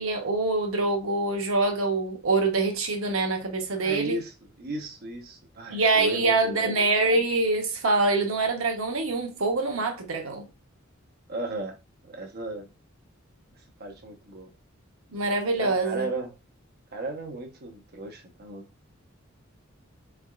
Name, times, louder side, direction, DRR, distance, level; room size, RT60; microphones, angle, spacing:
voice 1, 0.0-4.2 5.7-10.5 15.1-16.1, right 3 dB, 85° right, 0.8 m, -25 dB
voice 2, 3.7-6.7 11.3-11.8 12.1-12.7 13.8-14.5 15.6-16.4 16.9-18.6, right 2 dB, 50° right, 0.9 m, -35 dB
3.5 x 3.4 x 2.3 m
head